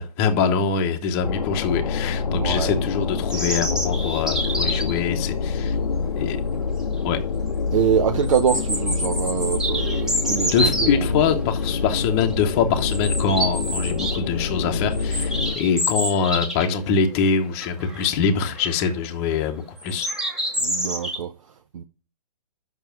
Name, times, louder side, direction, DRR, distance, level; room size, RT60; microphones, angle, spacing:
voice 1, 0.0-5.8 6.1-6.4 7.0-7.2 10.5-20.1, left 6 dB, 20° left, 0.9 m, -23 dB
sound 1, 1.2-15.6, left 5 dB, 85° left, 0.8 m, -26 dB
voice 2, 2.3-2.8 7.7-11.2 20.6-21.3 21.7-21.8, right 8 dB, 50° right, 0.7 m, -24 dB
sound 2, 3.3-5.0 6.6-6.7 7.0-7.1 8.2-10.9 11.6-11.9 12.2-12.3 12.8-14.2 14.5-16.8 17.1-17.2 17.6-18.1 18.6-18.9 19.8-21.2, equal, 5° right, 1.0 m, -27 dB
7.2 x 6.1 x 5.8 m
hypercardioid pair, 160°, 21 cm